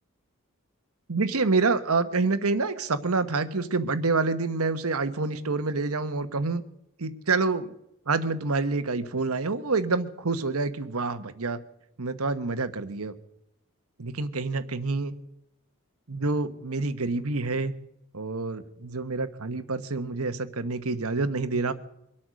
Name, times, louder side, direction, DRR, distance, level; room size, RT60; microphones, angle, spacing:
voice 1, 1.1-6.6 7.0-7.7 8.1-11.6 12.0-13.1 14.0-15.1 16.1-17.7 18.1-21.7, right 3 dB, 80° right, 11 dB, 1.1 m, -27 dB
24.0 x 8.7 x 6.3 m, 0.82 s
head